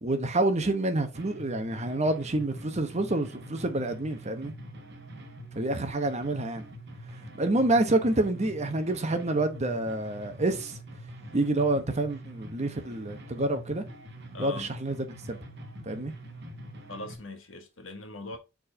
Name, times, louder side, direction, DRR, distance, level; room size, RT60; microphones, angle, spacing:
voice 1, 0.0-4.5 5.6-6.7 7.4-10.8 11.3-13.8 14.4-15.4 15.9-16.1, right 2 dB, 35° right, 1.0 m, -28 dB
sound 1, 1.1-17.2, equal, 60° right, 1.4 m, -44 dB
voice 2, 14.3-14.7 16.9-18.4, left 2 dB, 75° left, 1.5 m, -41 dB
4.6 x 4.4 x 5.0 m
head